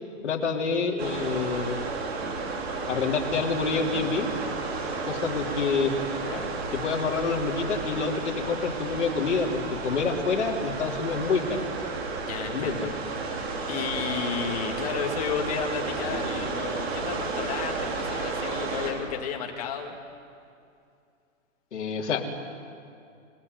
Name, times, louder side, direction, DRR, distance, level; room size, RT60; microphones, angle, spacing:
voice 1, 0.2-1.8 2.9-4.3 5.0-5.9 6.7-11.6 12.5-12.9 21.7-22.3, left 5 dB, 60° left, 0 dB, 3.7 m, -27 dB
sound 1, 1.0-18.9, right 3 dB, 50° right, 5.1 m, -32 dB
voice 2, 12.2-12.9 13.4-20.0, left 7 dB, 30° left, 2 dB, 2.2 m, -33 dB
28.0 x 18.5 x 9.6 m, 2.5 s
hypercardioid pair, 175°, 40 cm